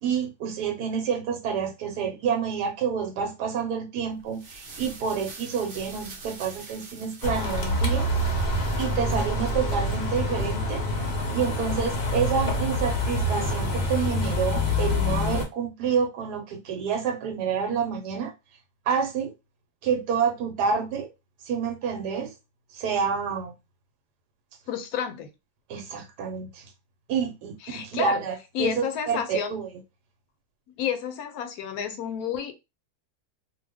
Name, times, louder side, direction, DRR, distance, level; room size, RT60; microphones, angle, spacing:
voice 1, 0.0-8.1 8.8-10.8 11.3-18.3 18.9-19.3 19.8-21.1 21.4-22.3 22.7-23.5 25.7-26.6 27.1-29.7, right 6 dB, 85° right, 1.2 m, -28 dB
sound 1, 4.2-9.4, right 3 dB, 55° right, 0.8 m, -45 dB
sound 2, 7.2-15.4, left 1 dB, 55° left, 0.7 m, -26 dB
voice 2, 24.7-25.3 27.6-28.2 28.5-29.5 30.8-32.5, left 8 dB, 75° left, 1.0 m, -30 dB
2.6 x 2.2 x 3.3 m
omnidirectional pair, 1.7 m